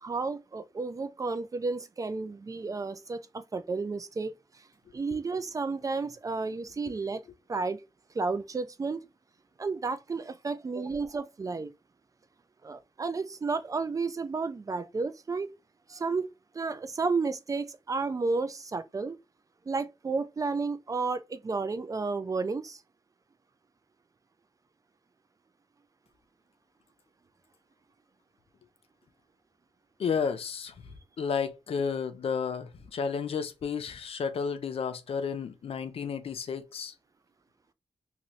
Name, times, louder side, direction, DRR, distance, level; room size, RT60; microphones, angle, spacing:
voice 1, 0.0-4.3 4.9-7.2 7.5-7.8 8.1-9.0 9.6-11.7 12.6-15.5 15.9-16.3 16.5-19.2 19.7-22.8, right 4 dB, 35° right, 0.3 m, -32 dB
voice 2, 30.0-30.7 31.2-36.9, left 6 dB, 75° left, 0.5 m, -32 dB
2.6 x 2.6 x 3.0 m
wide cardioid pair, 85°, 10 cm